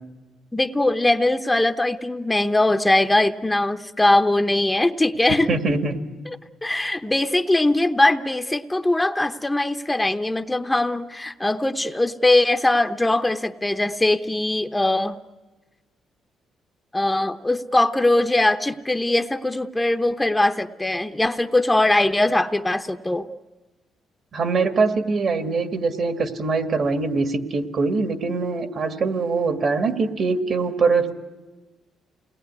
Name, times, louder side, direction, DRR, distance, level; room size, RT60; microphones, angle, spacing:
voice 1, 0.5-5.5 6.3-6.4 6.6-15.2 16.9-23.3, left 2 dB, 10° left, 8 dB, 0.8 m, -21 dB
voice 2, 5.5-6.0 24.3-31.1, right 4 dB, 55° right, 7 dB, 2.0 m, -23 dB
28.5 x 20.0 x 9.6 m, 1.2 s
cardioid pair, 90°, 0 cm